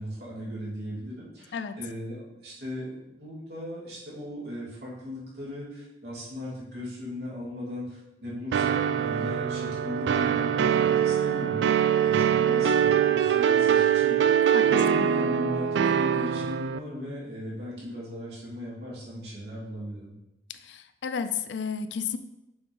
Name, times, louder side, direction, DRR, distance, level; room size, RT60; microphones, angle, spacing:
voice 1, 0.0-11.6 12.0-14.2 14.6-20.1, left 1 dB, 65° right, -7 dB, 2.3 m, -38 dB
sound 1, 8.5-16.8, right 8 dB, 85° right, 0.3 m, -23 dB
voice 2, 14.5-15.1 20.5-22.2, left 6 dB, 85° left, 11 dB, 0.4 m, -33 dB
6.4 x 3.5 x 4.5 m, 0.94 s
head